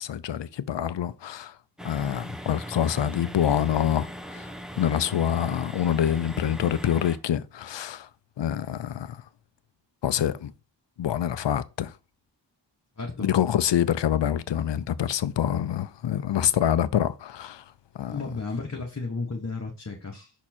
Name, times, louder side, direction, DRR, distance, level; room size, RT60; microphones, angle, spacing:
voice 1, 0.0-1.6 1.8-8.1 8.4-9.2 10.0-10.5 11.0-11.9 13.2-17.6 17.9-18.2, left 10 dB, 70° left, 0.6 m, -26 dB
sound 1, 1.8-7.2, equal, ahead, 0.8 m, -39 dB
voice 2, 13.0-13.3 18.1-20.3, left 3 dB, 35° left, 1.2 m, -33 dB
6.1 x 4.3 x 4.3 m
cardioid pair, 55°, 44 cm